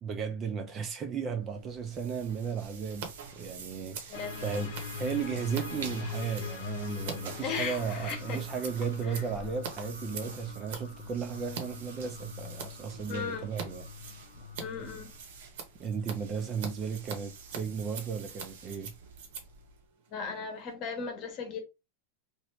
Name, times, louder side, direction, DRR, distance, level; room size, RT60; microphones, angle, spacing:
voice 1, 0.0-13.9 15.8-18.9, right 6 dB, 25° right, 0.4 m, -35 dB
sound 1, 1.4-19.9, right 5 dB, 90° right, 0.9 m, -48 dB
Scissors, 2.9-3.1 3.3-11.6 12.0-12.7 13.0-13.7 13.9-20.7, right 6 dB, 65° right, 0.9 m, -44 dB
sound 2, 4.1-15.2, left 7 dB, 70° left, 0.8 m, -43 dB
voice 2, 4.1-4.5 7.4-8.4 9.1-9.2 13.1-13.5 14.6-15.1 20.1-21.6, left 5 dB, 35° left, 0.9 m, -37 dB
3.0 x 2.5 x 3.1 m
supercardioid pair, 160°, 0 cm